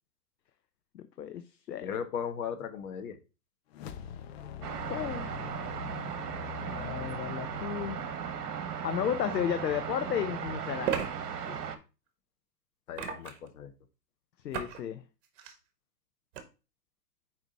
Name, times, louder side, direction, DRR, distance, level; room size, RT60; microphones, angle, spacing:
voice 1, 0.9-2.0 4.9-5.3 6.6-8.0 8.7-11.1 14.4-15.0, left 9 dB, 80° left, 0.7 m, -33 dB
voice 2, 1.8-3.2 11.5-11.6 12.9-13.7, left 7 dB, 55° left, 1.2 m, -37 dB
sound 1, 3.7-9.1, left 8 dB, 40° left, 0.7 m, -44 dB
sound 2, 4.6-11.8, right 7 dB, 65° right, 1.2 m, -37 dB
sound 3, 9.3-9.4 10.8-11.1 12.9-13.5 14.5-14.8 15.2-15.5 16.3-16.4, right 8 dB, 50° right, 1.5 m, -34 dB
5.4 x 4.9 x 4.1 m
hypercardioid pair, 120°, 49 cm